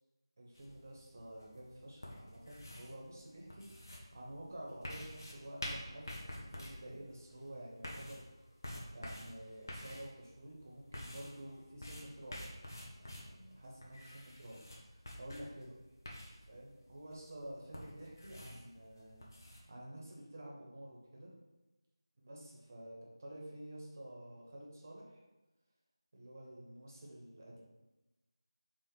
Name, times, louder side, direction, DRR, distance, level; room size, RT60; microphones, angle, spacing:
voice 1, 0.4-8.3 8.9-12.4 12.8-15.7 16.5-21.4 22.2-22.9 23.2-25.2 26.1-27.6, right 1 dB, 35° right, -3 dB, 1.0 m, -50 dB
sound 1, 0.6-19.6, left 1 dB, 45° left, 0.9 m, -49 dB
3.4 x 3.4 x 4.5 m, 1.1 s
figure-of-eight pair, 165°, 3 cm